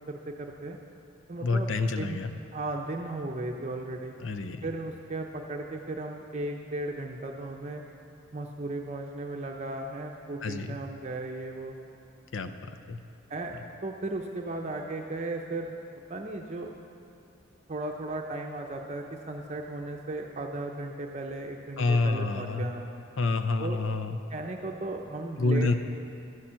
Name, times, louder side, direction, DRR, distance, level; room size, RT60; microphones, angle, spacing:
voice 1, 0.1-0.8 1.3-2.2 2.5-4.1 4.6-7.8 8.3-11.7 13.3-15.7 16.1-16.7 17.7-22.9 23.6-23.8 24.3-25.7, right 2 dB, 35° right, 1 dB, 0.6 m, -36 dB
voice 2, 1.4-2.3 4.2-4.7 10.4-10.8 12.3-12.5 12.9-13.0 21.8-22.7 23.2-24.2 25.4-25.7, left 3 dB, 80° left, 9 dB, 0.7 m, -27 dB
12.5 x 7.2 x 7.5 m, 2.7 s
head